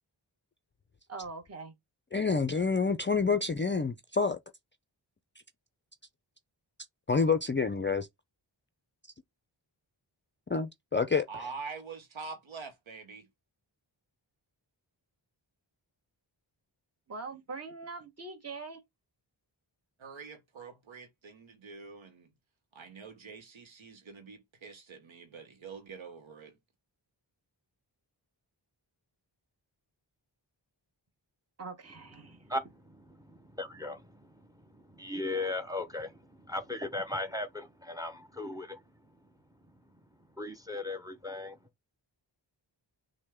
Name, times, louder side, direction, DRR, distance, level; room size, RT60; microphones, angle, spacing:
voice 1, 1.1-1.7 2.6-2.7 17.1-18.8 31.6-32.4, right 4 dB, 30° right, 1.2 m, -42 dB
voice 2, 2.1-4.4 7.1-8.1 10.5-11.2, left 4 dB, 25° left, 0.4 m, -28 dB
voice 3, 11.3-13.3 20.0-22.3 22.7-26.5, right 5 dB, 80° right, 0.8 m, -45 dB
voice 4, 32.2-38.8 40.4-41.6, left 2 dB, 10° right, 0.7 m, -38 dB
6.3 x 2.2 x 3.5 m
wide cardioid pair, 60°, 46 cm